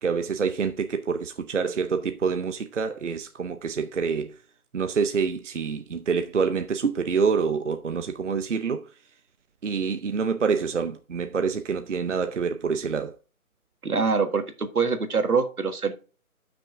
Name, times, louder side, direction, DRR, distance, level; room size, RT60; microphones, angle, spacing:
voice 1, 0.0-4.3 4.7-8.9 9.6-13.1, right 5 dB, 55° right, 0.6 m, -26 dB
voice 2, 13.8-15.9, right 5 dB, 85° right, 1.6 m, -24 dB
9.2 x 6.1 x 3.6 m
figure-of-eight pair, 170°, 43 cm